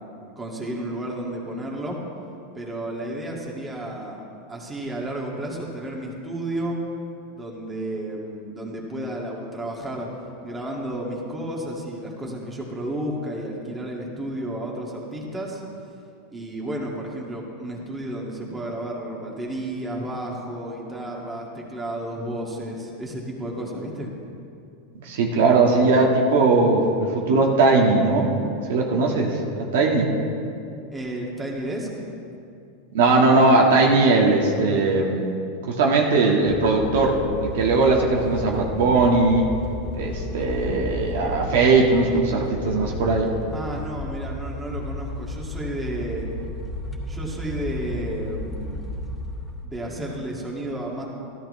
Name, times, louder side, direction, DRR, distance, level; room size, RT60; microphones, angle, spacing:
voice 1, 0.4-2.0 2.5-4.2 4.5-6.8 7.3-10.1 10.4-15.6 16.3-24.1 30.9-32.1 43.5-46.3 47.1-48.8 49.6-51.1, right 1 dB, 10° right, -3 dB, 2.1 m, -32 dB
voice 2, 25.0-28.3 28.7-30.1 32.9-35.3 35.6-39.5 39.9-43.3, right 3 dB, 75° right, 0 dB, 1.6 m, -19 dB
sound 1, 36.5-49.7, left 1 dB, 10° left, 2.2 m, -33 dB
14.0 x 13.0 x 3.2 m, 2.5 s
supercardioid pair, 130°, 0 cm